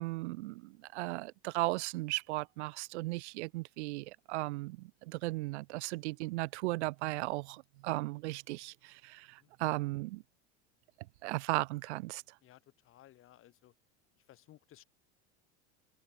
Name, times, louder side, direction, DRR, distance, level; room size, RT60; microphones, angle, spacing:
voice 1, 0.0-10.2 11.2-12.2, right 21 dB, 85° right, 0.8 m, -36 dB
voice 2, 12.4-13.7 14.2-14.8, left 13 dB, 40° left, 3.0 m, -59 dB
supercardioid pair, 135°, 33 cm